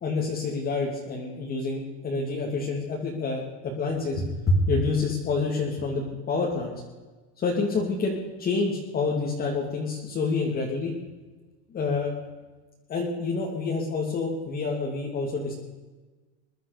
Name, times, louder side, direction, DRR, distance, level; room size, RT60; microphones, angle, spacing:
voice 1, 0.0-6.7 7.4-10.9 11.7-12.1 12.9-15.6, left 3 dB, 25° left, -3 dB, 2.8 m, -27 dB
22.5 x 11.5 x 5.2 m, 1.3 s
supercardioid pair, 140°, 35 cm